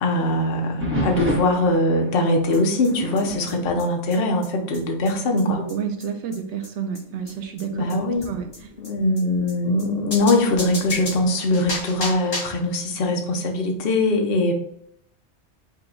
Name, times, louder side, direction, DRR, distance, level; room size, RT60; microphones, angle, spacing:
voice 1, 0.0-5.6 7.7-8.3 8.8-14.5, left 2 dB, 60° left, 2 dB, 0.9 m, -22 dB
sound 1, 0.8-4.9 5.3-5.6 6.2-6.3 7.1-9.8 11.6-12.1, equal, 10° right, 1.0 m, -33 dB
sound 2, 2.5-2.6 2.8-2.9 3.2-3.3 3.5-3.6 3.8-3.9 4.1-4.2 4.4-4.5 4.7-4.8 5.0-5.1 5.4-5.5 5.7-5.8 6.0-6.1 6.3-6.4 6.6-6.7 6.9-7.0 7.3-7.4 7.6-7.7 7.9-8.0 8.2-8.3 8.5-8.6 8.8-8.9 9.2-9.3 9.5-9.6 9.8-9.9 10.1-12.6, left 2 dB, 85° left, 2.4 m, -32 dB
voice 2, 5.4-8.7, right 7 dB, 80° right, 4 dB, 1.0 m, -30 dB
5.7 x 2.3 x 3.8 m, 0.71 s
omnidirectional pair, 1.2 m